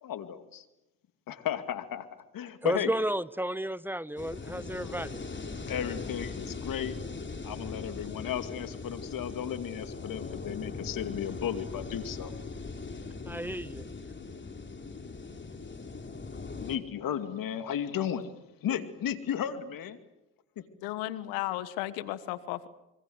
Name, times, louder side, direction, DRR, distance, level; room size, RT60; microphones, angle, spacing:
voice 1, 0.0-0.7 1.3-2.1 2.3-2.9 5.7-7.0 7.4-12.3 16.6-18.3 18.6-20.0 20.6-20.7, left 9 dB, 65° left, 2.5 m, -34 dB
voice 2, 2.6-5.2 13.3-13.9, right 1 dB, 5° right, 0.9 m, -32 dB
sound 1, 4.2-16.8, left 4 dB, 30° left, 3.8 m, -40 dB
voice 3, 20.8-22.7, left 15 dB, 90° left, 1.4 m, -34 dB
26.5 x 24.0 x 8.0 m
supercardioid pair, 60°, 36 cm